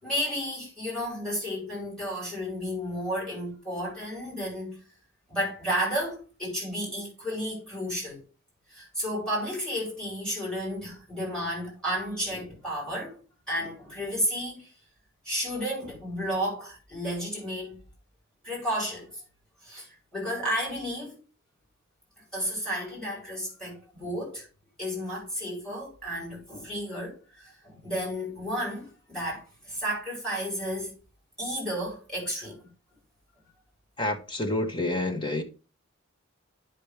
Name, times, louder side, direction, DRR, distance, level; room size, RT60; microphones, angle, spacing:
voice 1, 0.0-4.8 5.3-8.2 8.7-13.2 13.5-14.7 15.2-17.8 18.4-19.1 19.6-21.1 22.3-24.5 24.8-30.9 31.4-32.7, equal, 5° left, 4.9 m, -32 dB
voice 2, 34.0-35.4, left 2 dB, 25° left, 1.1 m, -28 dB
10.0 x 5.9 x 3.3 m
head